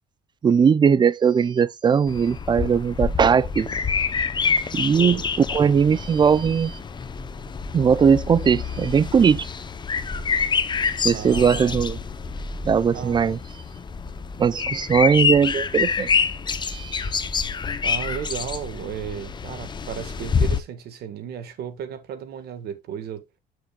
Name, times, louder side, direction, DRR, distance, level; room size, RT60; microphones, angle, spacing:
voice 1, 0.4-3.7 4.7-5.2 5.5-6.8 7.7-9.5 11.0-12.0 12.6-13.4 14.4-16.1 16.6-17.1, right 6 dB, 25° right, 0.4 m, -19 dB
sound 1, 2.1-20.6, left 5 dB, 25° left, 0.6 m, -27 dB
voice 2, 4.9-5.3 11.1-11.8 12.9-13.2 17.8-23.2, right 8 dB, 70° right, 1.5 m, -34 dB
8.4 x 6.5 x 2.3 m
cardioid pair, 110°, 17 cm